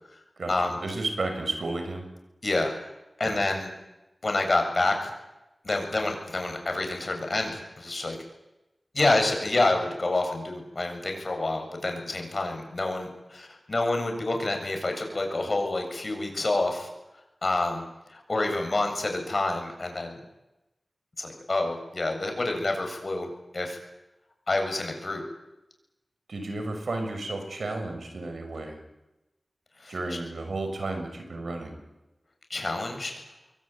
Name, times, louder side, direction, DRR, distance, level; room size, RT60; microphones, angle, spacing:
voice 1, 0.8-2.0 3.2-3.4 26.3-28.8 29.9-31.8, right 2 dB, 85° right, 6 dB, 6.4 m, -32 dB
voice 2, 2.4-2.7 3.2-3.7 4.2-5.1 5.6-8.2 8.9-16.9 17.4-17.8 18.1-20.2 21.2-23.8 24.5-25.2 29.8-29.9 32.5-33.1, left 2 dB, 50° left, 4 dB, 7.7 m, -28 dB
26.5 x 23.0 x 9.4 m, 0.98 s
wide cardioid pair, 65°, 0 cm